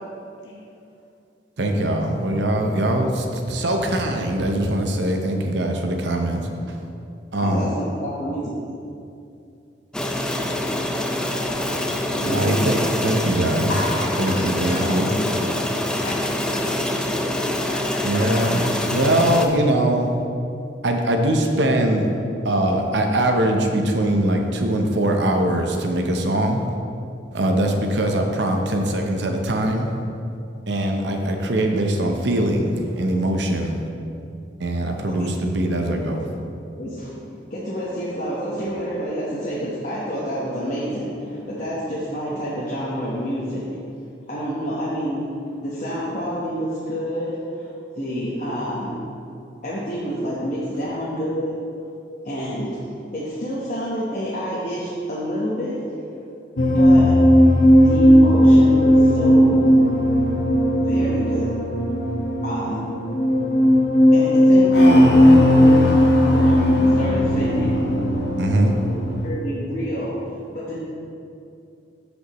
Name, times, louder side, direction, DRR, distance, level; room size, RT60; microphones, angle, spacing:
voice 1, 1.6-6.8 7.3-7.7 12.2-13.7 14.2-15.1 18.0-20.1 20.8-22.1 22.4-26.6 27.3-29.9 30.7-33.8 34.6-36.2 68.4-68.8, right 1 dB, 70° right, 3 dB, 0.8 m, -22 dB
voice 2, 7.4-8.4 12.1-12.7 14.8-15.2 36.8-43.7 44.3-47.7 47.9-49.0 49.6-51.6 52.2-55.9 56.7-57.2 57.7-59.8 60.9-61.5 62.4-62.8 64.1-67.8 68.8-70.8, equal, 45° left, -9 dB, 1.2 m, -28 dB
sound 1, 9.9-19.5, left 1 dB, 5° left, 0.4 m, -25 dB
voice 3, 13.7-18.7, left 1 dB, 85° left, -3 dB, 1.6 m, -34 dB
sound 2, 56.6-69.3, equal, 65° left, 1.0 m, -16 dB
13.0 x 5.2 x 3.1 m, 2.6 s
head